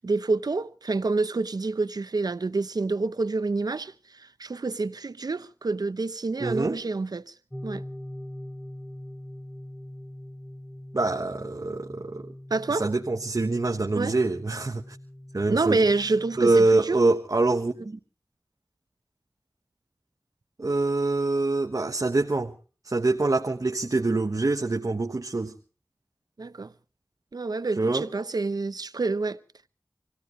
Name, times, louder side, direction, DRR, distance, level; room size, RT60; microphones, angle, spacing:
voice 1, 0.0-7.3 7.6-7.8 12.5-12.9 13.9-14.2 15.5-17.0 26.4-26.7 27.3-29.4, right 3 dB, 80° right, 0.8 m, -27 dB
voice 2, 6.4-6.8 10.9-12.3 12.7-14.8 15.3-15.8 16.4-18.0 20.6-22.5 22.8-25.5 27.8-28.0, right 2 dB, 60° right, 1.3 m, -25 dB
sound 1, 7.5-16.6, left 1 dB, 20° left, 4.9 m, -42 dB
26.0 x 16.5 x 3.2 m
wide cardioid pair, 45°, 7 cm